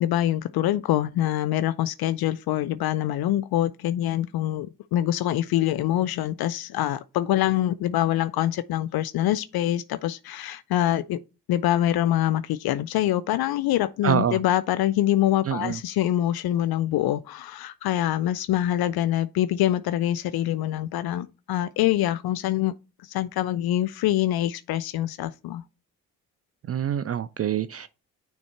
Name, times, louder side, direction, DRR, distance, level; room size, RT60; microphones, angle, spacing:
voice 1, 0.0-11.2 11.5-22.7 23.1-25.6, left 13 dB, 60° left, 0.5 m, -25 dB
voice 2, 14.0-14.4 15.5-15.8 26.7-27.9, right 9 dB, 35° right, 0.4 m, -25 dB
6.2 x 3.5 x 4.4 m
hypercardioid pair, 45°, 42 cm